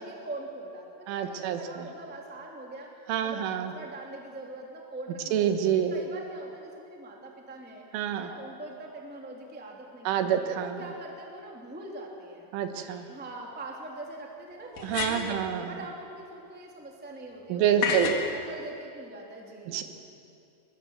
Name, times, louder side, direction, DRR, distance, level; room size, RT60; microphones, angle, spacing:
voice 1, 0.0-10.2 10.5-12.5 13.1-17.9 18.3-19.8, right 2 dB, 5° right, -1 dB, 1.5 m, -43 dB
voice 2, 1.1-1.9 3.1-3.7 5.3-5.9 7.9-8.3 10.1-10.8 12.5-13.1 14.8-15.7 17.5-18.2 19.7-19.8, right 9 dB, 80° right, 7 dB, 3.8 m, -27 dB
sound 1, 12.9-13.0 14.7-15.4 17.8-18.3, left 6 dB, 55° left, 2.7 m, -30 dB
22.5 x 22.5 x 7.3 m, 2.6 s
omnidirectional pair, 5.5 m